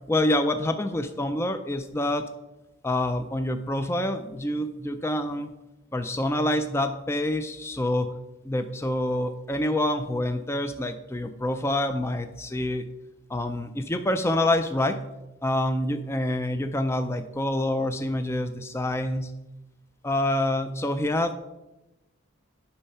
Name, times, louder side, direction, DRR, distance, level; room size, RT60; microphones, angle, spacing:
voice 1, 0.1-2.3 2.8-5.5 5.9-8.1 8.4-12.8 13.3-15.0 15.4-19.3 20.0-21.3, left 1 dB, 15° left, 8 dB, 0.4 m, -27 dB
8.7 x 5.6 x 5.5 m, 0.98 s
head